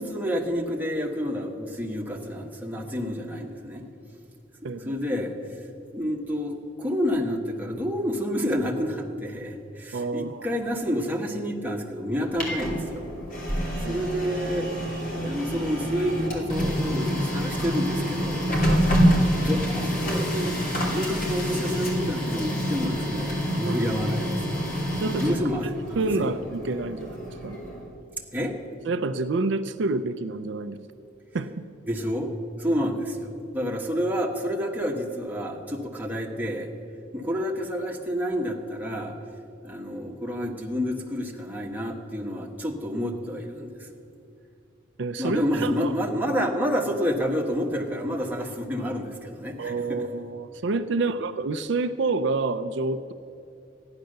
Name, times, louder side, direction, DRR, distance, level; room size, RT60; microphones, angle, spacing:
voice 1, 0.0-3.8 4.8-5.3 5.9-13.0 13.8-14.7 15.1-18.4 19.4-20.6 20.9-24.4 25.2-26.3 28.3-28.6 31.9-32.3 32.6-36.7 37.1-39.1 39.6-43.9 45.2-50.0 50.9-51.0, equal, 10° right, -1 dB, 1.4 m, -29 dB
voice 2, 4.6-5.0 9.9-10.5 13.8-14.0 18.7-18.9 23.6-23.8 25.0-25.4 26.0-27.6 28.9-30.8 31.3-31.5 45.0-45.9 49.6-53.1, right 3 dB, 65° right, 9 dB, 0.5 m, -28 dB
Printer, 12.1-27.9, equal, 45° left, 2.8 m, -27 dB
14.0 x 10.5 x 6.6 m, 2.7 s
head